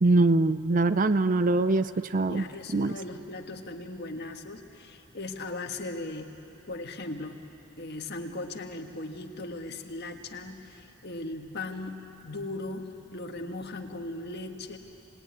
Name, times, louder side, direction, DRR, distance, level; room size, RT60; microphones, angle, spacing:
voice 1, 0.0-2.4 2.7-3.0, right 2 dB, 40° right, 13 dB, 0.6 m, -23 dB
voice 2, 2.1-6.4 6.7-7.4 7.8-14.8, left 2 dB, 55° left, 4 dB, 1.6 m, -38 dB
25.5 x 19.5 x 9.7 m, 2.8 s
head